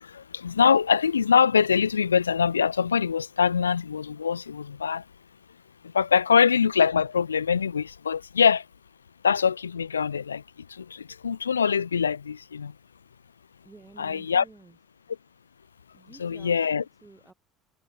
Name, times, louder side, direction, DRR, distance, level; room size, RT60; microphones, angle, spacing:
voice 1, 0.0-5.0 5.8-8.6 9.2-12.7 14.0-14.4 16.2-16.8, left 6 dB, 85° left, 0.7 m, -23 dB
voice 2, 13.6-14.8 15.9-17.3, right 3 dB, 15° right, 7.6 m, -51 dB
figure-of-eight pair, 65°, 0 cm